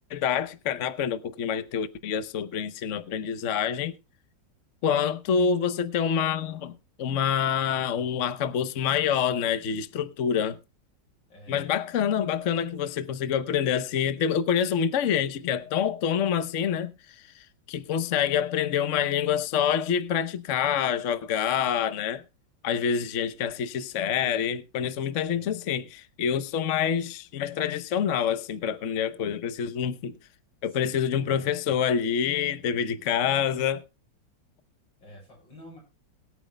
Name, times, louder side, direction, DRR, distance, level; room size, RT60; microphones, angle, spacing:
voice 1, 0.1-4.0 4.8-6.7 7.0-10.6 11.5-16.9 17.3-22.2 22.6-30.2 30.6-33.8, left 8 dB, 55° left, 1.0 m, -27 dB
voice 2, 11.3-11.6 25.2-25.6 30.6-31.5 32.5-33.0 35.0-35.8, equal, 85° left, 8.0 m, -49 dB
22.0 x 9.0 x 2.2 m
omnidirectional pair, 2.0 m